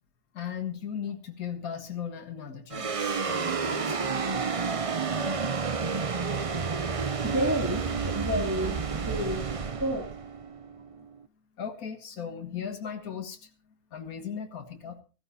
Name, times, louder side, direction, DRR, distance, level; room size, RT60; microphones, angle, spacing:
voice 1, 0.3-4.1 11.6-13.5 13.9-15.0, left 7 dB, 70° left, 4 dB, 2.1 m, -37 dB
sound 1, 2.7-11.2, right 5 dB, 40° right, 0.5 m, -30 dB
voice 2, 7.1-10.1, equal, 10° right, 0 dB, 2.3 m, -31 dB
14.5 x 14.5 x 4.2 m, 0.35 s
omnidirectional pair, 1.6 m